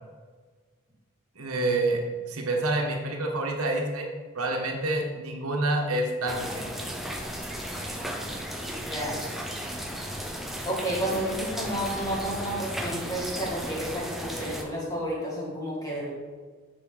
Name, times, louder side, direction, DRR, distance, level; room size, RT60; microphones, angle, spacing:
voice 1, 1.4-2.0 2.3-6.7, right 2 dB, 85° right, 0 dB, 1.3 m, -28 dB
sound 1, 6.3-14.6, equal, ahead, 0.6 m, -35 dB
voice 2, 8.8-9.2 10.7-16.1, right 1 dB, 15° left, -4 dB, 2.0 m, -31 dB
8.9 x 5.1 x 4.0 m, 1.4 s
head